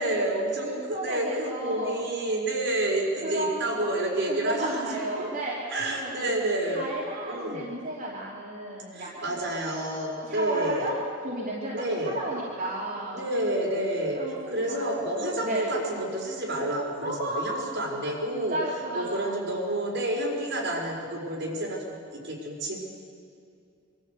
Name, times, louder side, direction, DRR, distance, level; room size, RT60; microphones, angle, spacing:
voice 1, 0.0-5.3 5.7-6.8 7.3-7.6 8.9-10.9 11.7-12.2 13.1-14.2 14.5-18.6 18.9-21.9 22.2-22.8, right 1 dB, 60° right, -3 dB, 4.9 m, -29 dB
voice 2, 0.6-1.9 3.2-3.8 4.3-6.4 6.7-9.3 10.2-13.3 14.1-15.6 17.0-17.5 18.3-19.3, right 1 dB, 45° right, -6 dB, 3.0 m, -33 dB
23.5 x 14.0 x 8.2 m, 2.5 s
head